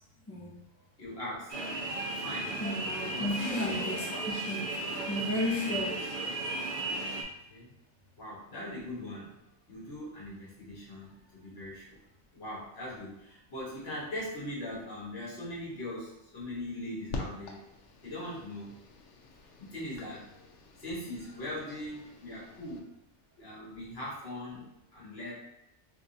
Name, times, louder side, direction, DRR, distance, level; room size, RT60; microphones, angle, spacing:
voice 1, 0.7-1.5 2.1-2.6 3.1-3.4 5.7-6.3 7.5-7.7 8.2-9.3 9.7-12.0 12.3-17.6 18.0-18.7 19.6-20.3 20.8-22.9 23.4-25.3, left 1 dB, 60° left, -6 dB, 1.5 m, -41 dB
London Underground Tube Station Alarm, 1.5-7.2, right 2 dB, 50° right, 0.8 m, -35 dB
voice 2, 2.6-4.7 5.1-6.0, left 1 dB, 20° left, -5 dB, 0.6 m, -33 dB
sound 1, 17.1-22.8, left 3 dB, 80° left, 0.9 m, -46 dB
3.6 x 3.0 x 2.6 m, 0.83 s
omnidirectional pair, 1.2 m